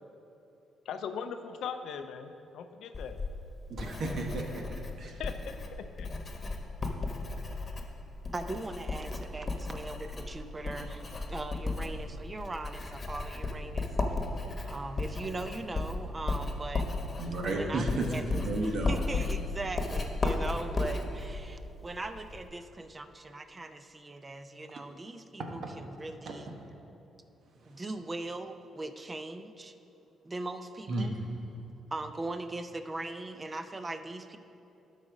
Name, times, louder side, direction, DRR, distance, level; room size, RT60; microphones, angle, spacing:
voice 1, 0.9-3.2 5.2-6.1, left 6 dB, 75° left, 8 dB, 0.4 m, -39 dB
Writing, 2.9-22.5, left 3 dB, 35° left, 1.1 m, -35 dB
voice 2, 3.7-4.6 5.0-5.1 17.2-18.9 25.6-25.8 26.3-26.4 30.9-31.1, right 2 dB, 65° right, 2 dB, 1.2 m, -32 dB
voice 3, 8.3-11.0 11.3-13.9 14.6-16.9 17.5-18.4 18.9-26.6 27.6-29.7 30.2-31.2 31.9-34.4, right 2 dB, 30° right, 10 dB, 0.6 m, -40 dB
12.0 x 4.1 x 5.1 m, 2.8 s
supercardioid pair, 55°, 0 cm